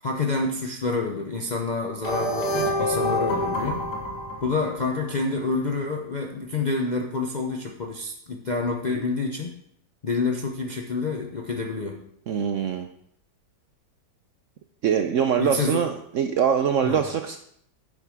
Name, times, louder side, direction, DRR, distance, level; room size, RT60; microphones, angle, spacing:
voice 1, 0.0-3.8 4.4-9.6 10.0-12.0 15.4-15.8 16.8-17.0, left 3 dB, 50° left, 1 dB, 0.5 m, -28 dB
sound 1, 2.0-5.1, left 1 dB, 80° left, 1.9 m, -27 dB
voice 2, 12.3-12.9 14.8-17.4, right 8 dB, 70° right, 7 dB, 0.8 m, -23 dB
9.6 x 7.3 x 3.6 m, 0.67 s
omnidirectional pair, 1.8 m